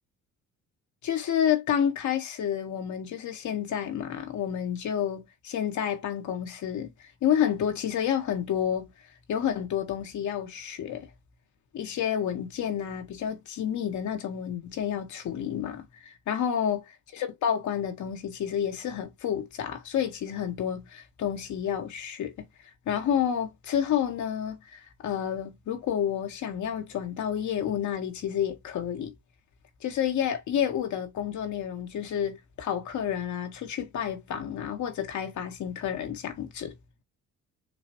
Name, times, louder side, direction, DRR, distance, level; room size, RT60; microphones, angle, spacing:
voice 1, 1.0-8.9 9.3-11.1 11.7-16.8 17.1-22.4 22.9-29.1 29.8-36.7, left 9 dB, 70° left, 1.4 m, -30 dB
6.7 x 2.5 x 2.9 m
cardioid pair, 90°, 30 cm